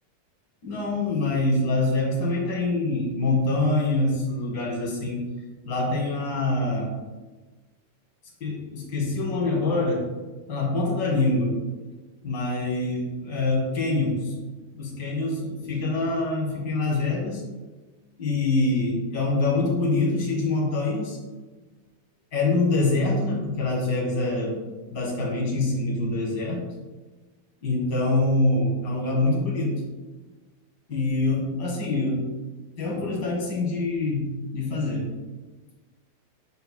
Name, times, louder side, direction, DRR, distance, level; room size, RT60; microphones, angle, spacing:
voice 1, 0.6-5.2 5.6-6.9 8.4-10.0 10.5-11.5 12.2-14.3 14.7-17.4 18.2-21.2 22.3-24.6 24.9-26.6 27.6-29.7 30.9-32.2 32.8-35.1, left 2 dB, 45° left, -4 dB, 1.5 m, -25 dB
7.9 x 5.3 x 2.2 m, 1.3 s
omnidirectional pair, 4.3 m